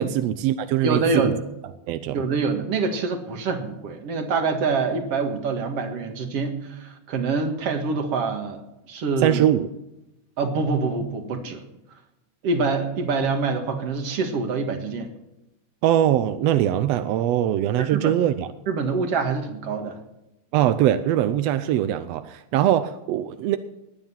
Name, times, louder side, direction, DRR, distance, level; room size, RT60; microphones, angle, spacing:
voice 1, 0.0-1.3 1.9-2.2 9.2-9.7 15.8-18.5 20.5-23.6, right 11 dB, 75° right, 11 dB, 1.5 m, -22 dB
voice 2, 0.8-1.3 2.1-8.6 8.9-9.4 10.4-11.6 12.4-15.1 17.8-18.1 18.7-20.0, right 4 dB, 55° right, 6 dB, 2.5 m, -25 dB
20.0 x 9.3 x 5.7 m, 0.90 s
omnidirectional pair, 3.5 m